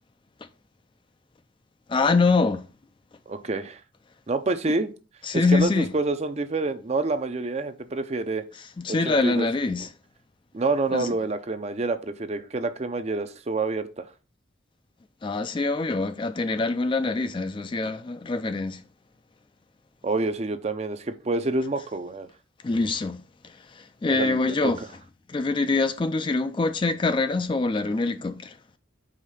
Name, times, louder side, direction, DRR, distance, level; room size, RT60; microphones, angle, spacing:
voice 1, 1.9-2.7 5.2-5.9 8.8-9.9 10.9-11.1 15.2-18.8 22.6-24.8 25.3-28.6, left 3 dB, 25° left, 0.3 m, -25 dB
voice 2, 3.3-3.8 4.3-4.9 5.5-8.5 8.9-9.5 10.5-14.0 20.0-22.3 24.1-24.7, right 3 dB, 35° right, 0.5 m, -27 dB
5.0 x 3.6 x 5.5 m
head